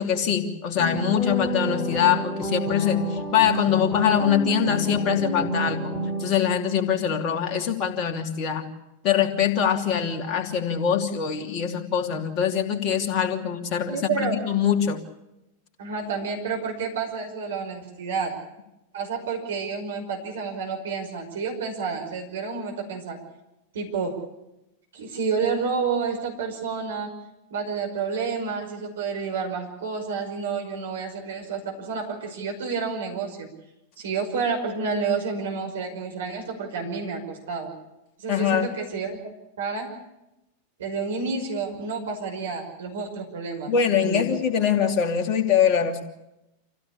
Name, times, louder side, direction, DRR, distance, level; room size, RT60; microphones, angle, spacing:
voice 1, 0.0-8.7 9.0-15.0 38.3-38.7 43.7-46.0, left 8 dB, 40° left, 4 dB, 2.9 m, -23 dB
sound 1, 0.8-6.7, equal, 5° left, 3.2 m, -29 dB
voice 2, 13.9-14.4 15.8-18.4 18.9-23.2 23.7-24.2 24.9-27.1 27.5-33.5 34.0-37.7 38.2-39.2 39.6-39.9 40.8-44.3, right 5 dB, 60° right, 2 dB, 5.6 m, -29 dB
27.0 x 16.0 x 8.5 m, 0.92 s
figure-of-eight pair, 90°, 0 cm